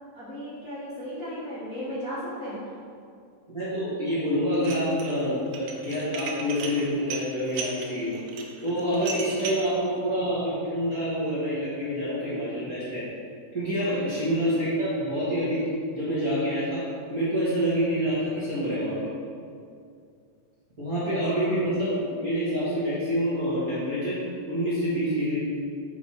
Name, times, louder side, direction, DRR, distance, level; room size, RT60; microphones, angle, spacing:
voice 1, 0.1-2.6 13.8-14.2 21.2-21.6, equal, 85° left, -11 dB, 0.7 m, -36 dB
voice 2, 3.5-8.2 8.6-13.1 13.5-19.1 20.8-24.2 24.5-25.4, equal, 50° right, -12 dB, 1.0 m, -27 dB
Dishes pots and pans, 4.5-5.1 5.5-9.7, right 4 dB, 80° right, 2.5 m, -36 dB
7.1 x 5.4 x 4.7 m, 2.4 s
omnidirectional pair, 4.6 m